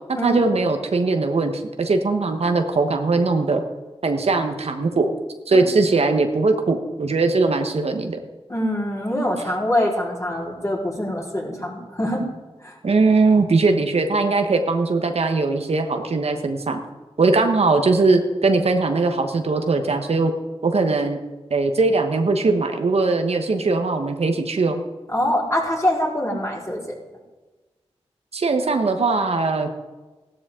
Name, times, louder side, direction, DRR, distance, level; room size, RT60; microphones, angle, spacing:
voice 1, 0.2-3.6 4.0-5.1 5.5-8.2 12.8-16.8 17.2-20.3 20.6-21.2 21.5-24.8 28.3-29.7, right 3 dB, 70° right, 5 dB, 1.2 m, -20 dB
voice 2, 8.5-12.2 12.6-12.7 25.1-26.8, equal, 30° left, -3 dB, 4.2 m, -24 dB
15.0 x 12.5 x 3.8 m, 1.2 s
cardioid pair, 45°, 11 cm